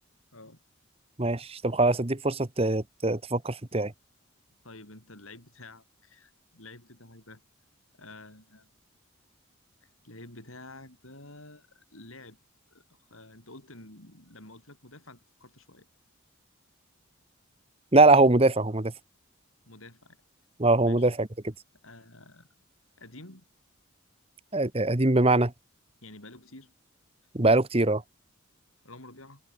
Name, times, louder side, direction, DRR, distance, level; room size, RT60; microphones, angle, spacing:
voice 1, 1.2-3.9 17.9-18.9 20.6-21.3 24.5-25.5 27.3-28.0, right 2 dB, 25° right, 1.3 m, -22 dB
voice 2, 4.6-7.4 8.0-8.7 9.8-12.4 12.7-15.9 19.7-20.2 20.8-21.1 21.8-22.5 23.0-23.4 26.0-26.7 28.8-29.4, left 2 dB, 75° left, 7.5 m, -49 dB
head